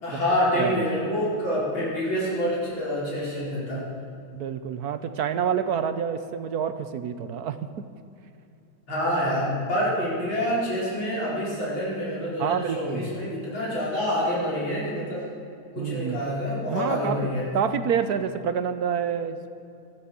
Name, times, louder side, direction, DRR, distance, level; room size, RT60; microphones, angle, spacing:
voice 1, 0.0-3.8 8.9-15.2 15.8-17.5, equal, 75° left, -6 dB, 5.3 m, -27 dB
voice 2, 4.3-7.9 12.4-13.1 15.8-16.2 16.7-17.2 17.5-19.5, right 8 dB, 65° right, 10 dB, 1.0 m, -28 dB
15.5 x 13.0 x 6.9 m, 2.6 s
omnidirectional pair, 2.2 m